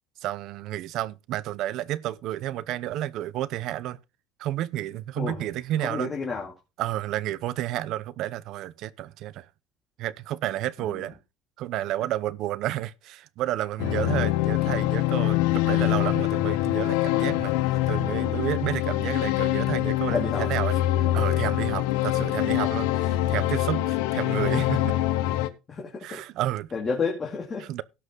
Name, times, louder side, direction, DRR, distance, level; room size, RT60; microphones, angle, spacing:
voice 1, 0.2-4.0 4.4-6.1 6.8-9.5 10.0-11.2 11.6-17.6 17.9-20.8 21.1-24.9 26.0-26.7 27.6-27.8, right 14 dB, 55° right, 0.7 m, -31 dB
voice 2, 5.2-5.5 5.8-6.5 20.1-20.5 21.0-21.5 25.7-26.2 26.7-27.7, left 4 dB, 25° left, 2.5 m, -31 dB
sound 1, 13.8-25.5, left 15 dB, 90° left, 1.1 m, -24 dB
17.0 x 5.9 x 3.8 m
cardioid pair, 140°, 0 cm